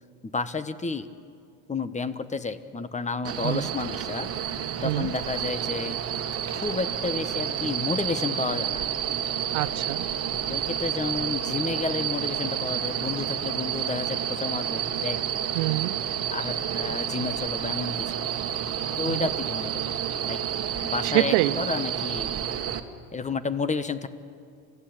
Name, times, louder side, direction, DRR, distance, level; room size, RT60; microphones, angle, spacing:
voice 1, 0.2-1.1 1.7-4.3 4.8-6.0 6.5-8.9 10.5-15.2 16.3-18.3 19.0-19.8 20.2-20.4 20.8-22.3 23.1-24.1, left 4 dB, 20° left, 13 dB, 1.3 m, -31 dB
sound 1, 3.2-22.8, right 9 dB, 35° right, 1.8 m, -30 dB
voice 2, 9.5-10.1 15.5-16.0 19.1-19.3 21.0-21.6, right 19 dB, 75° right, 18 dB, 0.7 m, -25 dB
27.5 x 15.0 x 8.8 m, 2.3 s
supercardioid pair, 95°, 38 cm